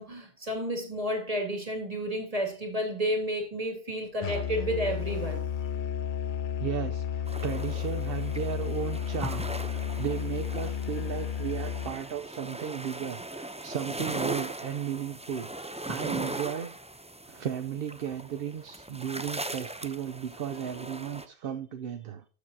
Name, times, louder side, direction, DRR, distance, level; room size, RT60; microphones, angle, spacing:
voice 1, 0.0-5.5, equal, 35° right, 2.4 m, -31 dB
Musical instrument, 4.2-12.0, left 8 dB, 60° left, 0.6 m, -32 dB
voice 2, 6.6-16.7 17.3-22.2, right 9 dB, 70° right, 0.9 m, -35 dB
sound 1, 7.3-21.3, right 1 dB, 10° right, 0.4 m, -39 dB
13.5 x 7.1 x 2.7 m
omnidirectional pair, 1.0 m